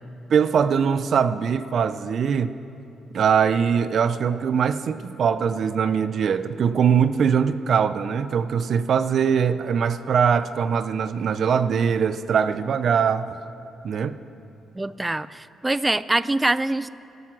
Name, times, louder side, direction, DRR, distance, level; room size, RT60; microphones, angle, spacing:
voice 1, 0.3-2.6 3.1-13.4 13.8-14.2, right 7 dB, 60° right, 13 dB, 0.6 m, -22 dB
voice 2, 14.7-16.9, right 2 dB, 15° right, 17 dB, 0.4 m, -24 dB
16.5 x 12.0 x 6.1 m, 2.8 s
cardioid pair, 90°, 0 cm